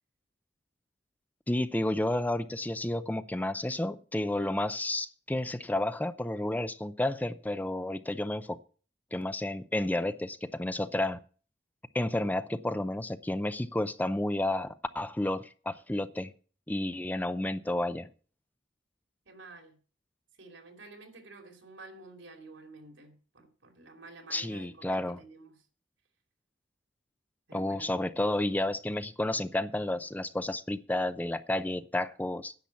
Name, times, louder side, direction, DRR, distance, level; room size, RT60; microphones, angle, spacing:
voice 1, 1.5-8.6 9.1-11.2 11.9-16.3 16.7-18.1 24.3-25.2 27.5-32.5, left 1 dB, 10° left, 0.5 m, -31 dB
voice 2, 19.3-19.8 20.3-25.6 27.5-28.0, right 3 dB, 85° right, 2.9 m, -50 dB
10.5 x 7.2 x 8.3 m
head